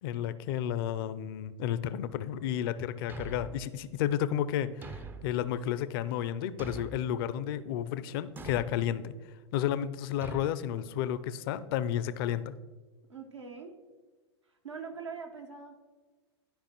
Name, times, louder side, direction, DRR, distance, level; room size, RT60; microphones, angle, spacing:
voice 1, 0.0-9.2 9.5-12.5, left 10 dB, 55° left, 15 dB, 0.5 m, -32 dB
Thump thud, 3.1-3.7 4.8-5.4 6.6-7.1 8.4-8.8 10.2-10.5, right 3 dB, 15° right, 0.4 m, -43 dB
voice 2, 13.1-13.7 14.4-15.8, right 5 dB, 85° right, 3 dB, 1.1 m, -43 dB
12.0 x 4.9 x 3.0 m, 1.3 s
hypercardioid pair, 95°, 15 cm